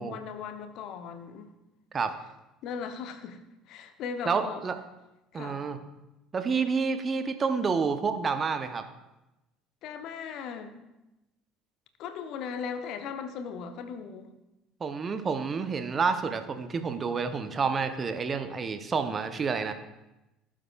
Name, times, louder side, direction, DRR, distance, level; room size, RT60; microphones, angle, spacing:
voice 1, 0.0-1.5 2.6-3.4 3.7-4.6 5.3-5.7 9.8-10.9 12.0-14.3, left 6 dB, 55° left, 8 dB, 0.9 m, -38 dB
voice 2, 4.3-4.8 5.3-5.8 6.3-8.8 14.8-19.7, right 5 dB, 30° right, 9 dB, 0.8 m, -29 dB
17.0 x 7.5 x 2.4 m, 0.97 s
figure-of-eight pair, 60°, 0 cm